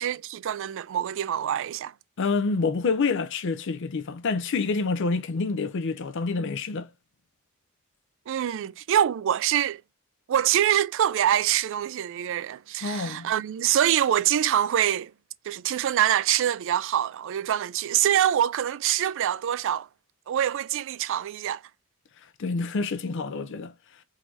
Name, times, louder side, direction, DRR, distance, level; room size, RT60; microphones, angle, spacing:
voice 1, 0.0-1.9 8.3-9.8 10.3-15.1 15.4-19.9 20.3-21.6, right 10 dB, 60° right, 0.3 m, -25 dB
voice 2, 2.2-6.9 12.8-13.3 22.2-23.7, left 4 dB, 60° left, 0.5 m, -27 dB
3.8 x 2.6 x 4.5 m
head